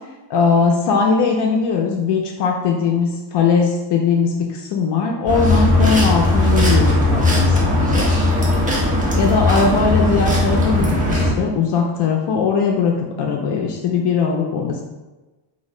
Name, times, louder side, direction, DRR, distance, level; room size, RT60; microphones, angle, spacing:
voice 1, 0.3-8.1 9.1-14.8, left 5 dB, 60° left, 1 dB, 0.5 m, -19 dB
sound 1, 5.3-11.3, left 1 dB, 15° right, 0.7 m, -17 dB
2.8 x 2.6 x 4.2 m, 1.1 s
cardioid pair, 160°, 49 cm